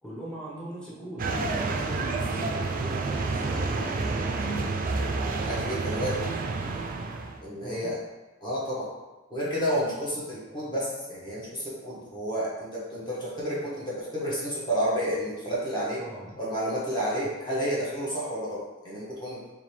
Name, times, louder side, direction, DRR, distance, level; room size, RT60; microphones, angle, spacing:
voice 1, 0.0-4.7 7.6-8.0 16.0-16.3, right 1 dB, 5° left, -7 dB, 1.0 m, -40 dB
sound 1, 1.2-7.4, right 3 dB, 45° right, 0.4 m, -29 dB
voice 2, 5.4-6.2 7.4-8.0 8.4-8.9 9.3-16.0 16.4-19.4, equal, 20° left, -8 dB, 1.2 m, -30 dB
3.8 x 3.4 x 3.2 m, 1.1 s
head